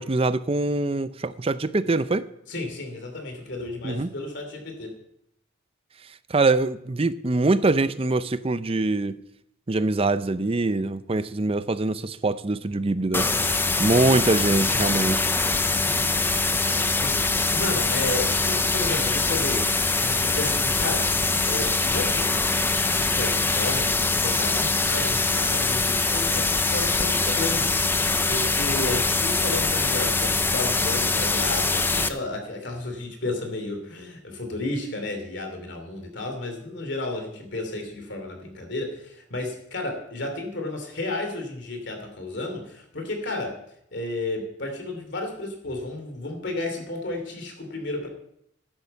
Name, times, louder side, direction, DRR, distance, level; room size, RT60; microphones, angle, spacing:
voice 1, 0.0-2.3 3.8-4.1 6.3-9.2 9.7-13.3 13.8-15.3, right 2 dB, 30° right, 13 dB, 0.6 m, -23 dB
voice 2, 2.5-5.0 16.9-19.7 20.0-21.1 21.4-22.5 22.9-43.6 43.9-48.1, left 2 dB, 60° left, 4 dB, 2.9 m, -32 dB
sound 1, 13.1-32.1, left 3 dB, 10° left, 0.6 m, -23 dB
11.0 x 9.7 x 6.9 m, 0.76 s
head